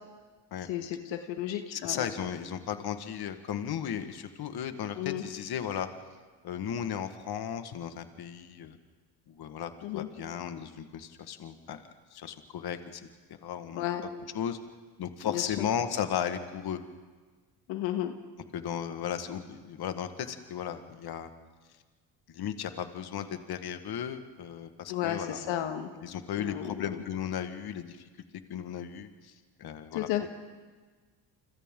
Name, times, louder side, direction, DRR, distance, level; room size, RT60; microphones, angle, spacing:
voice 1, 0.7-2.1 5.0-5.2 9.8-10.1 13.8-14.0 15.2-15.7 17.7-18.1 24.9-25.9 26.4-27.0 29.9-30.3, left 12 dB, 85° left, 6 dB, 1.6 m, -33 dB
voice 2, 1.7-5.9 6.4-8.8 9.3-11.8 12.1-13.0 13.3-14.6 15.0-16.8 18.5-21.3 22.3-25.7 26.0-28.0 28.5-30.1, left 9 dB, 60° left, 8 dB, 1.7 m, -35 dB
29.0 x 25.5 x 3.8 m, 1.4 s
cardioid pair, 95°, 44 cm